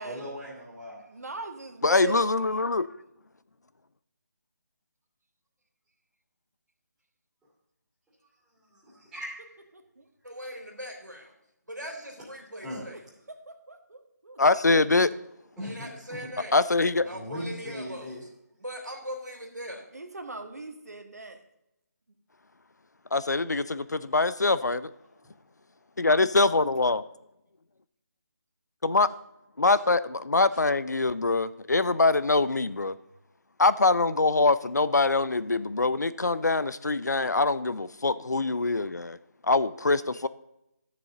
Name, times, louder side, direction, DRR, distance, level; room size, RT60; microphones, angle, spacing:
voice 1, 0.0-1.1 8.7-9.6 12.6-12.8 15.6-16.3 17.1-18.2 25.2-25.3 30.5-30.6, equal, 5° right, -9 dB, 2.7 m, -39 dB
voice 2, 1.1-2.6 13.7-14.0 19.9-21.4, right 3 dB, 60° right, 5 dB, 1.6 m, -38 dB
voice 3, 1.8-2.9 14.4-15.1 16.5-17.1 23.1-24.9 26.0-27.0 28.8-29.1 29.6-32.9 33.6-39.2 39.4-40.3, left 3 dB, 70° left, 16 dB, 0.5 m, -24 dB
voice 4, 10.2-11.3 11.7-13.0 15.6-16.6 17.0-18.3 18.6-19.8, equal, 85° right, 1 dB, 2.4 m, -40 dB
14.0 x 6.9 x 3.9 m, 0.84 s
figure-of-eight pair, 150°, 9 cm